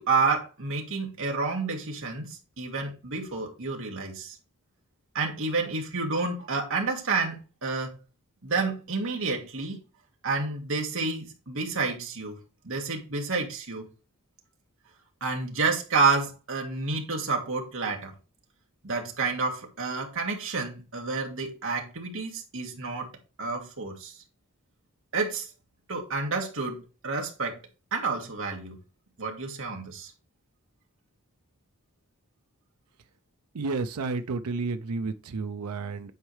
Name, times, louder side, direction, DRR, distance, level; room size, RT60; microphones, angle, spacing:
voice 1, 0.0-4.4 5.1-8.0 8.4-9.8 10.2-12.4 12.6-13.9 15.2-18.1 18.8-23.1 23.4-24.1 25.1-25.5 25.9-27.6 27.9-28.8 29.2-30.1, right 4 dB, 60° right, 1.7 m, -29 dB
voice 2, 33.5-36.1, right 3 dB, 85° right, 0.5 m, -31 dB
9.3 x 4.5 x 3.2 m
head